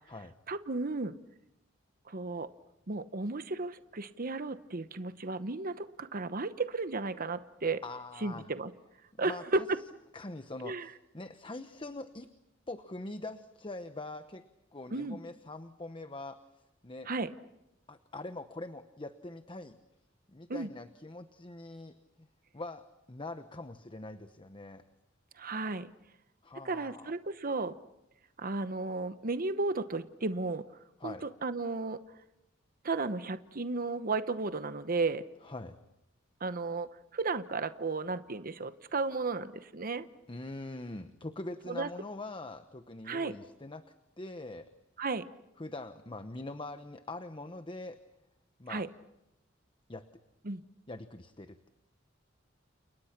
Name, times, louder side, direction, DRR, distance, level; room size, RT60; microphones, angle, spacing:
voice 1, 0.5-1.2 2.1-2.5 2.9-7.8 8.2-8.7 9.2-9.8 10.6-10.9 14.9-15.2 17.1-17.3 20.5-20.7 25.4-25.9 26.6-27.7 28.4-30.6 31.0-32.0 32.8-35.2 36.4-40.0 41.7-41.9 43.1-43.3 45.0-45.3 48.7-48.9 50.4-50.6, right 3 dB, 45° right, 12 dB, 1.0 m, -34 dB
voice 2, 7.8-8.5 9.2-9.7 10.1-12.3 12.7-14.4 14.7-16.4 16.8-17.1 17.9-19.8 20.3-22.3 22.5-24.8 26.4-27.1 31.0-31.3 35.4-35.8 40.3-43.8 44.2-44.7 45.6-48.0 48.6-48.9 49.9-50.0 50.9-51.7, left 2 dB, 25° left, 10 dB, 1.0 m, -43 dB
30.0 x 29.0 x 6.0 m, 0.88 s
head